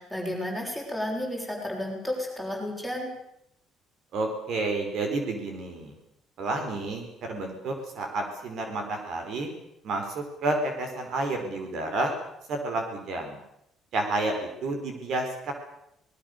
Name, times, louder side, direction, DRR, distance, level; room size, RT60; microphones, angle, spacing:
voice 1, 0.0-3.1, left 1 dB, 5° right, 0 dB, 6.6 m, -32 dB
voice 2, 4.1-5.9 6.4-9.5 9.8-12.1 12.5-13.4 13.9-15.5, right 2 dB, 55° right, 4 dB, 4.9 m, -30 dB
27.0 x 20.0 x 6.9 m, 0.79 s
cardioid pair, 165°, 0 cm